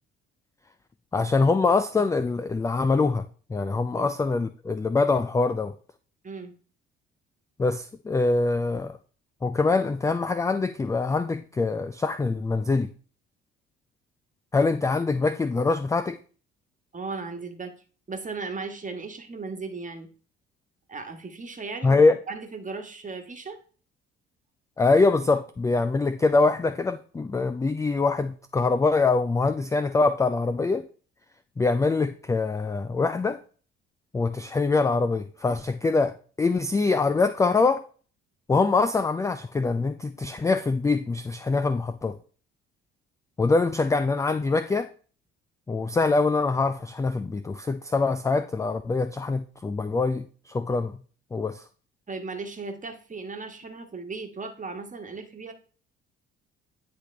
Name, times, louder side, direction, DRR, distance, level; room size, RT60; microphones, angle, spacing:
voice 1, 1.1-5.7 7.6-9.0 9.4-12.9 14.5-16.2 21.8-22.2 24.8-30.9 31.6-33.4 34.1-37.8 38.5-42.2 43.4-44.9 45.7-51.0 51.3-51.6, left 3 dB, 10° left, 0.3 m, -24 dB
voice 2, 6.2-6.5 16.9-17.7 18.1-20.1 20.9-22.0 22.3-23.6 52.1-55.5, right 4 dB, 25° right, 1.5 m, -36 dB
9.8 x 3.4 x 3.4 m
figure-of-eight pair, 50°, 32 cm